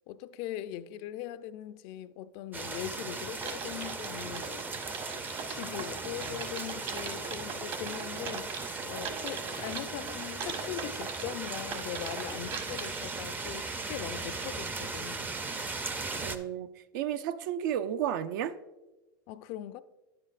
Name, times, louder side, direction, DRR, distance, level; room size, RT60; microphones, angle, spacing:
voice 1, 0.1-4.7 5.4-8.6 8.9-15.3 19.3-19.8, left 12 dB, 55° left, 0.4 m, -41 dB
sound 1, 2.5-16.4, right 3 dB, 15° right, 0.5 m, -38 dB
Typing, 3.4-13.8, right 5 dB, 50° right, 1.2 m, -41 dB
voice 2, 16.2-18.5, right 10 dB, 70° right, 0.5 m, -32 dB
9.7 x 7.5 x 2.5 m
hypercardioid pair, 110°, 11 cm